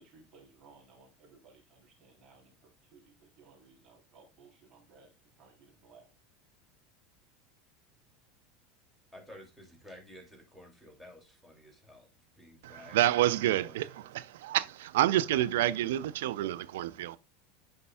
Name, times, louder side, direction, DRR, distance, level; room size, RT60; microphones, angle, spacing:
voice 1, 0.0-2.5 2.9-5.1 5.4-6.1, right 4 dB, 40° right, 3.5 m, -59 dB
voice 2, 9.1-12.1 12.4-13.0 13.6-14.1, left 1 dB, ahead, 2.6 m, -52 dB
voice 3, 12.6-17.2, right 13 dB, 75° right, 0.4 m, -28 dB
10.0 x 5.3 x 2.3 m
hypercardioid pair, 85°, 0 cm